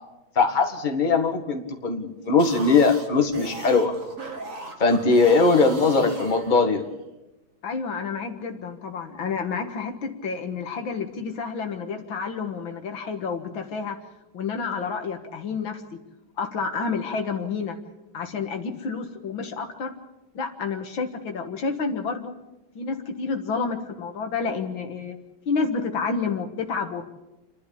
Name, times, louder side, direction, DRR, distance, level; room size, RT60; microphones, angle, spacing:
voice 1, 0.4-3.9 4.8-6.8, left 4 dB, 25° left, 3 dB, 1.9 m, -20 dB
sound 1, 2.2-7.0, right 2 dB, 40° right, 2.5 m, -39 dB
voice 2, 7.6-14.0 14.3-15.8 16.4-17.8 18.1-20.0 20.3-22.4 22.8-25.2 25.5-27.0, left 5 dB, 70° left, 6 dB, 2.4 m, -29 dB
29.0 x 11.5 x 8.6 m, 0.99 s
omnidirectional pair, 2.2 m